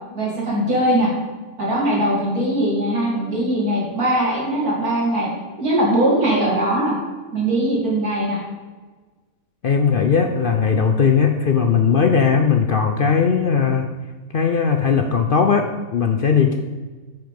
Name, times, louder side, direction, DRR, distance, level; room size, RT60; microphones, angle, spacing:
voice 1, 0.2-1.1 1.6-5.3 5.6-7.0 7.3-8.4, right 1 dB, 85° right, -4 dB, 3.5 m, -20 dB
voice 2, 9.6-13.9 14.3-16.6, left 6 dB, 55° left, 5 dB, 0.6 m, -18 dB
8.8 x 6.3 x 5.3 m, 1.3 s
omnidirectional pair, 1.5 m